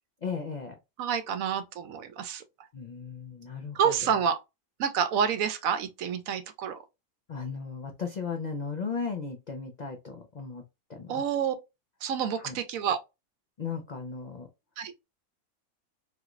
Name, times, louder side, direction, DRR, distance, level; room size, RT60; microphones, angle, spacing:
voice 1, 0.2-0.7 2.7-3.9 7.3-10.6 10.9-11.2 12.3-12.6 13.6-14.5, left 5 dB, 70° left, 0.4 m, -36 dB
voice 2, 1.0-2.4 3.7-4.4 4.8-6.8 11.1-11.5 12.0-13.0 14.8-14.9, right 7 dB, 75° right, 1.0 m, -28 dB
3.2 x 2.9 x 2.4 m
omnidirectional pair, 1.5 m